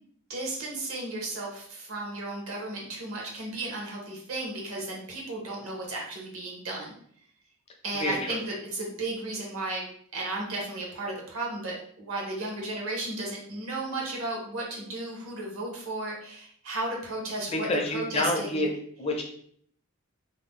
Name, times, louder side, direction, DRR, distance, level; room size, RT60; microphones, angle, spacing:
voice 1, 0.3-6.9 7.8-9.8 10.1-18.6, right 2 dB, 70° right, -1 dB, 0.8 m, -34 dB
voice 2, 7.9-8.4 17.6-18.7 19.0-19.2, left 2 dB, 25° left, 2 dB, 0.4 m, -28 dB
2.7 x 2.0 x 3.5 m, 0.62 s
head